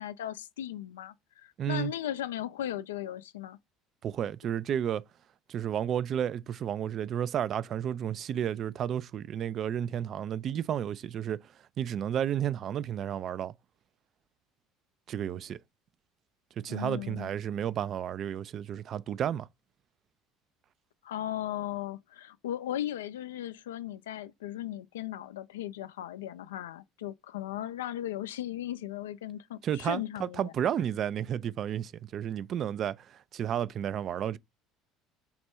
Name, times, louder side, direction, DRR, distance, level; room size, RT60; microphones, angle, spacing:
voice 1, 0.0-3.6 16.7-17.3 21.0-30.5, left 12 dB, 90° left, 0.4 m, -37 dB
voice 2, 1.6-1.9 4.0-5.0 5.5-11.4 11.8-13.5 15.1-15.6 16.6-19.5 29.6-34.4, right 9 dB, 50° right, 0.3 m, -32 dB
5.4 x 2.2 x 4.4 m
hypercardioid pair, 75°, 0 cm